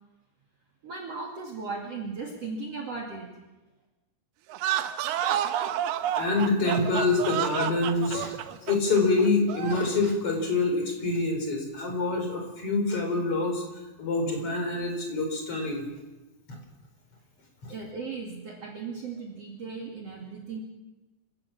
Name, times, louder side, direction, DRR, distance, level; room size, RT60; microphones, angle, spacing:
voice 1, 0.8-3.3 17.7-20.6, right 4 dB, 45° right, -1 dB, 3.1 m, -37 dB
sound 1, 4.5-10.0, right 11 dB, 80° right, 2.9 m, -30 dB
voice 2, 6.1-8.3 8.6-13.6 14.0-15.9 16.5-16.6 17.6-17.7, left 3 dB, 35° left, 3 dB, 4.9 m, -26 dB
26.5 x 17.5 x 7.3 m, 1.1 s
omnidirectional pair, 4.4 m